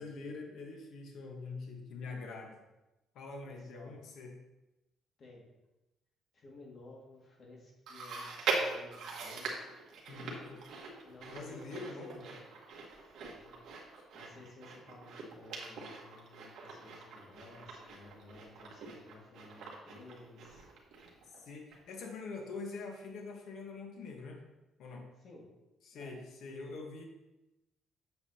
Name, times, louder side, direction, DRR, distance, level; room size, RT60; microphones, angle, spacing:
voice 1, 0.0-2.6 3.1-4.3 10.1-10.6 11.3-12.2 21.4-24.4 24.8-25.1 25.9-27.0, left 3 dB, 65° left, 1 dB, 1.3 m, -44 dB
voice 2, 3.4-4.0 5.2-5.5 6.3-9.6 11.0-12.4 13.2-20.6 25.2-25.5 25.9-26.2, left 2 dB, 40° left, -2 dB, 2.1 m, -55 dB
Chewing mastication, 7.9-21.4 21.7-21.8 22.6-22.7, right 4 dB, 60° right, 1.6 m, -42 dB
8.0 x 7.3 x 2.9 m, 1.0 s
cardioid pair, 155°, 0 cm